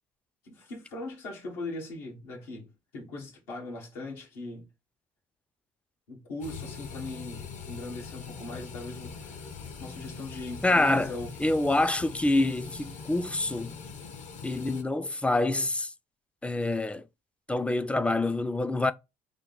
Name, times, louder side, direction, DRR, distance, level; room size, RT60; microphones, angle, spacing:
voice 1, 0.4-4.7 6.1-9.5 9.8-11.3, left 2 dB, 85° left, 1.3 m, -40 dB
sound 1, 6.4-14.8, left 5 dB, 60° left, 0.8 m, -42 dB
voice 2, 10.6-11.1 11.4-13.8 14.4-15.9 16.4-17.0 17.5-18.9, left 2 dB, 10° left, 0.3 m, -26 dB
3.5 x 2.1 x 3.7 m
supercardioid pair, 80°, 14 cm